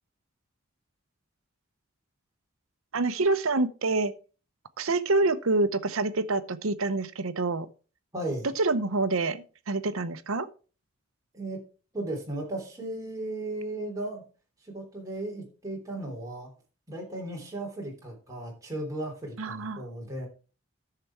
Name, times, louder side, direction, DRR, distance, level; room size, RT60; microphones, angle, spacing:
voice 1, 2.9-4.1 4.8-7.7 8.6-10.5 19.4-19.8, right 3 dB, 80° right, 0.8 m, -27 dB
voice 2, 8.1-8.5 11.3-11.6 11.9-14.2 14.6-16.5 16.9-20.3, right 1 dB, 15° right, 3.2 m, -35 dB
10.5 x 6.7 x 4.6 m
head